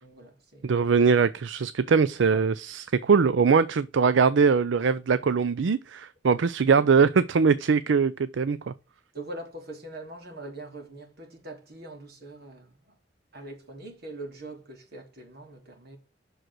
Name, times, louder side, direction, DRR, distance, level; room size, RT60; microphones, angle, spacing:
voice 1, 0.0-0.8 2.3-2.4 6.7-6.9 9.1-12.9 13.3-16.0, right 2 dB, 55° right, 3.0 m, -42 dB
voice 2, 0.6-8.7, right 5 dB, 75° right, 0.5 m, -22 dB
7.7 x 6.3 x 6.1 m
head